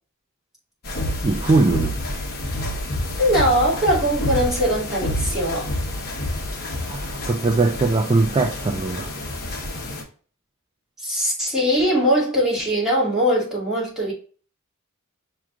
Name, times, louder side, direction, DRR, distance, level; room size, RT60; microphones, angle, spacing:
sound 1, 0.8-10.0, left 1 dB, 45° left, 1.1 m, -28 dB
voice 1, 1.2-2.0 6.9-9.1, right 3 dB, 25° right, 0.3 m, -20 dB
voice 2, 3.2-5.7 11.0-14.1, equal, ahead, 2.2 m, -21 dB
6.1 x 3.0 x 2.4 m
head